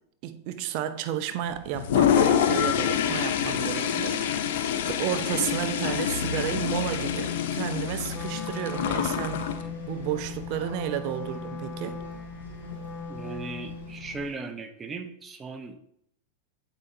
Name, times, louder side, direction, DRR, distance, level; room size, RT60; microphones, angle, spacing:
voice 1, 0.2-4.3 4.8-9.5 9.9-12.0, right 11 dB, 55° right, 0.6 m, -32 dB
Engine, 1.4-14.4, left 5 dB, 85° left, 1.8 m, -40 dB
Toilet flush, 1.7-9.6, left 9 dB, 70° left, 0.6 m, -26 dB
Wind instrument woodwind instrument, 8.1-14.1, left 3 dB, 20° left, 0.3 m, -39 dB
voice 2, 13.1-15.8, right 3 dB, 20° right, 0.8 m, -37 dB
7.5 x 4.9 x 2.7 m
hypercardioid pair, 105°, 0 cm